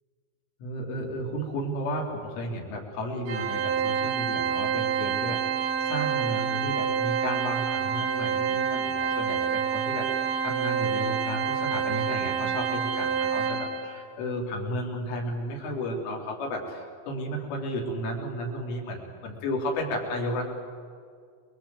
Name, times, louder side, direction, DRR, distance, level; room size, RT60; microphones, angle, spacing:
voice 1, 0.6-20.4, equal, 85° left, -1 dB, 6.5 m, -33 dB
Organ, 3.3-14.0, right 7 dB, 60° right, 3.1 m, -28 dB
29.5 x 22.0 x 8.1 m, 2.2 s
omnidirectional pair, 5.5 m